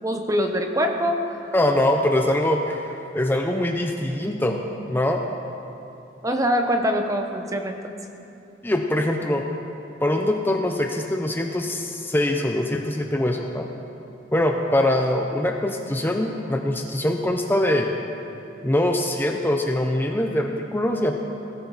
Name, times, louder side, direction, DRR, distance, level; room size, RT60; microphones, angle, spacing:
voice 1, 0.0-1.4 6.2-8.1, equal, 15° right, 5 dB, 0.8 m, -24 dB
voice 2, 1.5-4.6 4.9-5.2 8.6-9.5 10.0-13.7 14.3-17.9 18.6-21.2, left 1 dB, 10° left, 3 dB, 0.7 m, -23 dB
18.0 x 14.0 x 4.1 m, 2.8 s
head